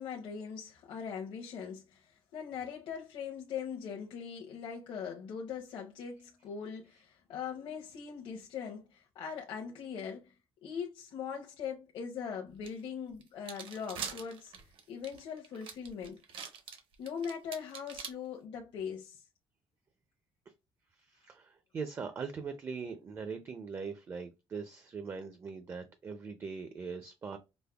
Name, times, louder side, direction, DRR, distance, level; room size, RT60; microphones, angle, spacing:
voice 1, 0.0-10.4 10.6-14.5 14.9-16.2 17.0-19.2, left 7 dB, 60° left, 0.7 m, -41 dB
sound 1, 12.6-12.7 13.2-18.1, right 7 dB, 65° right, 0.8 m, -43 dB
voice 2, 20.9-27.4, right 5 dB, 25° right, 0.4 m, -41 dB
5.1 x 2.0 x 2.3 m
cardioid pair, 175°, 10 cm